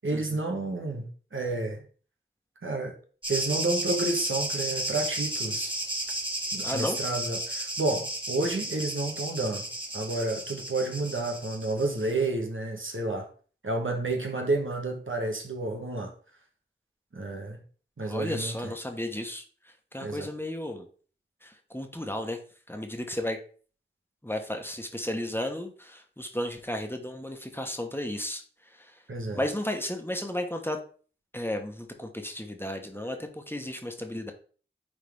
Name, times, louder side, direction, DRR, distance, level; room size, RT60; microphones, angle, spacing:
voice 1, 0.0-1.8 2.6-2.9 3.3-5.7 6.5-9.7 9.9-13.3 13.6-16.1 17.1-17.6 18.0-18.7 20.0-20.3 29.1-29.4, right 2 dB, 85° right, 3 dB, 1.5 m, -30 dB
sound 1, 3.2-12.1, right 1 dB, 25° right, 2.4 m, -33 dB
voice 2, 6.6-7.0 18.0-19.4 19.9-20.9 21.4-22.4 22.7-23.4 24.2-28.4 28.7-28.9 29.3-30.8 31.3-34.3, left 1 dB, 10° left, 4 dB, 1.3 m, -33 dB
9.5 x 4.1 x 3.6 m, 0.42 s
wide cardioid pair, 40°, 20 cm